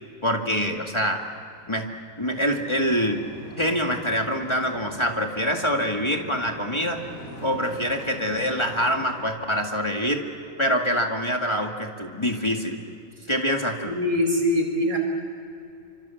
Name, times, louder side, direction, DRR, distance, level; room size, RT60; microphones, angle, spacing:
voice 1, 0.2-1.2 1.7-1.9 2.2-3.2 3.6-7.0 7.4-10.2 10.6-12.8 13.3-13.9, equal, 20° left, 2 dB, 2.1 m, -25 dB
sound 1, 2.2-9.2, equal, 90° left, 8.4 m, -42 dB
voice 2, 13.8-15.0, left 1 dB, 85° right, 2 dB, 5.6 m, -23 dB
28.5 x 25.5 x 7.1 m, 2.6 s
omnidirectional pair, 1.4 m